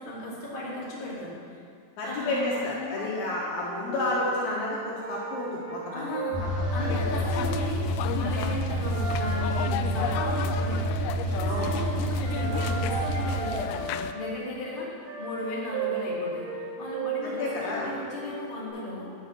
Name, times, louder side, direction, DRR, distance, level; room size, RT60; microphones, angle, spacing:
voice 1, 0.0-1.5 2.0-3.1 5.9-7.8 8.2-13.7 14.1-14.9 15.2-16.5 16.8-19.1, left 2 dB, 25° left, -7 dB, 1.1 m, -35 dB
voice 2, 2.0-6.1 6.4-6.9 11.5-11.7 17.2-17.9, left 2 dB, 65° left, -5 dB, 2.8 m, -31 dB
sound 1, 3.2-3.3 3.5-5.9 6.1-7.7 8.9-10.9 11.3-11.7 12.2-14.3 15.0-18.7, right 3 dB, 75° right, 5.2 m, -35 dB
sound 2, 6.3-13.4, right 1 dB, 45° right, 4.8 m, -29 dB
sound 3, 6.9-14.1, left 10 dB, 85° left, 3.0 m, -35 dB
11.5 x 5.8 x 8.4 m, 2.1 s
omnidirectional pair, 5.9 m